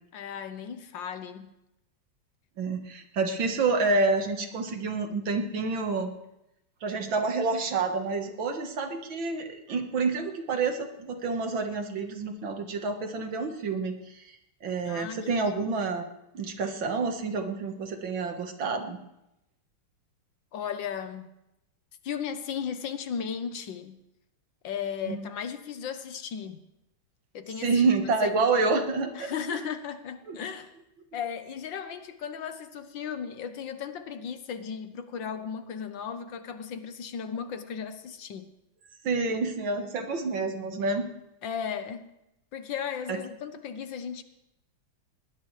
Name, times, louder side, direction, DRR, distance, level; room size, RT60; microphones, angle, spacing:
voice 1, 0.1-1.5 14.9-15.7 20.5-21.3 22.0-24.0 24.6-26.6 27.3-27.8 28.2-28.3 29.1-30.7 31.1-38.5 41.4-42.1 42.5-44.2, left 7 dB, 70° left, 9 dB, 1.6 m, -36 dB
voice 2, 2.6-6.1 6.8-14.4 14.6-16.0 16.3-19.0 25.1-25.2 27.6-29.3 30.3-30.4 39.0-41.0 43.1-43.2, right 3 dB, 70° right, 5 dB, 2.2 m, -28 dB
20.5 x 19.5 x 3.3 m, 0.89 s
omnidirectional pair, 2.2 m